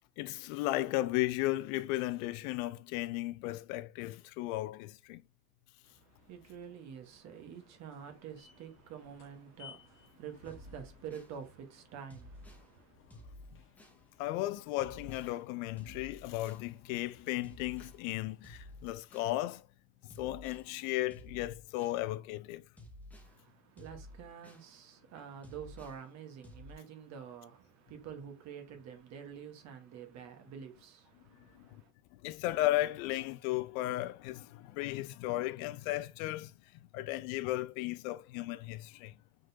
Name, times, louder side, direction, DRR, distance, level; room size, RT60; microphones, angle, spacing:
voice 1, 0.2-5.2 14.2-19.6 20.2-22.6 31.6-31.7 32.2-36.5 36.9-39.1, left 16 dB, 70° left, 0.5 m, -35 dB
sound 1, 5.8-19.3, left 5 dB, 30° left, 1.1 m, -62 dB
voice 2, 5.8-12.9 23.2-31.9, right 8 dB, 40° right, 1.2 m, -48 dB
sound 2, 10.4-11.3 12.1-12.7 13.1-14.0 14.8-15.3 15.8-16.7 17.4-18.0 18.4-19.4 20.1-20.7 21.1-22.0 22.8-23.3 23.8-24.7 25.4-26.0 26.4-26.7, left 1 dB, 5° left, 0.5 m, -52 dB
4.8 x 4.0 x 2.7 m
cardioid pair, 160°, 43 cm